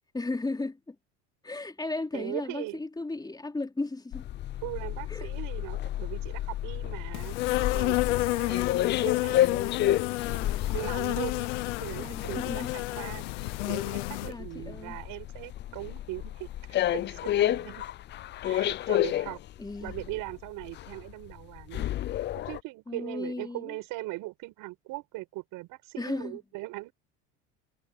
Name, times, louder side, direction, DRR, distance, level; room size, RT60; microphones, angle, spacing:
voice 1, 0.1-0.9 1.4-4.3 5.1-5.3 12.0-12.7 14.3-15.0 19.6-20.0 22.9-23.8 26.0-26.4, left 2 dB, 10° left, 3.4 m, -35 dB
voice 2, 2.1-2.8 4.6-8.7 9.0-10.0 10.3-11.5 11.8-16.5 16.9-17.8 18.4-19.4 19.8-21.9 22.4-26.9, right 20 dB, 65° right, 6.1 m, -40 dB
sound 1, 4.1-22.6, left 13 dB, 30° left, 0.5 m, -31 dB
Insect, 7.1-14.3, left 21 dB, 85° left, 1.0 m, -30 dB
supercardioid pair, 110°, 35 cm